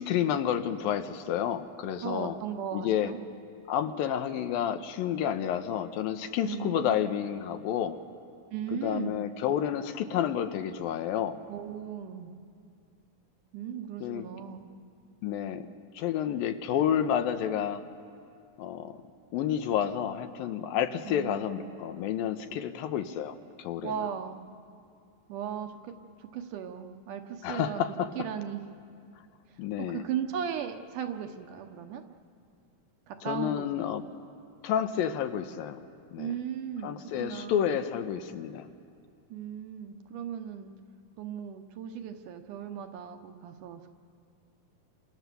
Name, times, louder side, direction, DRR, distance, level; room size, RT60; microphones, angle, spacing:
voice 1, 0.0-2.4 2.7-3.1 3.7-8.0 8.7-11.4 14.0-14.3 15.2-15.7 15.9-17.8 18.6-19.0 19.3-23.9 27.4-28.1 29.6-30.0 33.3-34.0 34.6-35.8 36.1-36.3 36.8-38.7, left 9 dB, 85° left, 8 dB, 2.7 m, -30 dB
voice 2, 2.0-3.2 6.4-6.9 8.5-9.2 11.5-12.3 13.5-14.7 21.0-21.9 23.8-24.5 25.3-28.6 29.5-32.1 33.1-33.7 36.2-37.9 39.3-40.7 41.2-43.8, right 8 dB, 70° right, 6 dB, 2.3 m, -37 dB
28.5 x 26.0 x 6.9 m, 2.4 s
omnidirectional pair, 4.1 m